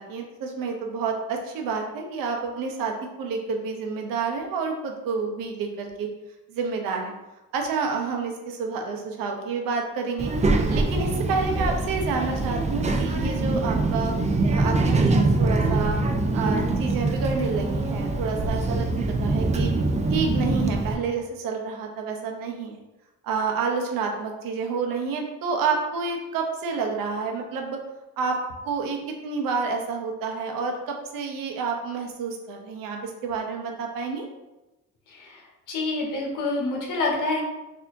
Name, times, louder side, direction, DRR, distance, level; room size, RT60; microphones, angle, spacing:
voice 1, 0.0-6.1 6.5-7.1 7.5-10.3 10.7-14.1 14.5-16.0 16.3-19.7 20.1-22.8 23.2-27.8 28.2-28.4 28.6-34.3, right 5 dB, 90° right, 2 dB, 0.7 m, -29 dB
Child speech kid speaking, 10.2-20.9, right 2 dB, 20° right, 0.4 m, -24 dB
voice 2, 35.7-37.4, left 2 dB, 70° left, -1 dB, 1.1 m, -27 dB
4.3 x 2.8 x 2.6 m, 1.0 s
cardioid pair, 100°, 33 cm